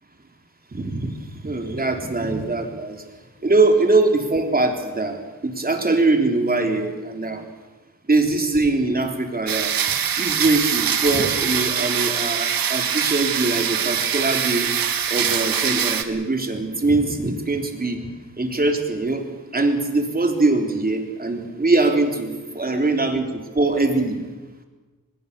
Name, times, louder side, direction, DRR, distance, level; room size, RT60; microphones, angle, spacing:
voice 1, 0.7-1.1 1.4-3.0 3.4-7.4 8.1-9.7 10.2-14.7 15.1-18.1 18.4-19.2 19.5-24.2, right 2 dB, 25° right, 4 dB, 3.7 m, -22 dB
sound 1, 9.5-16.0, right 8 dB, 90° right, 1.7 m, -23 dB
25.0 x 20.5 x 7.0 m, 1.2 s
wide cardioid pair, 95°, 34 cm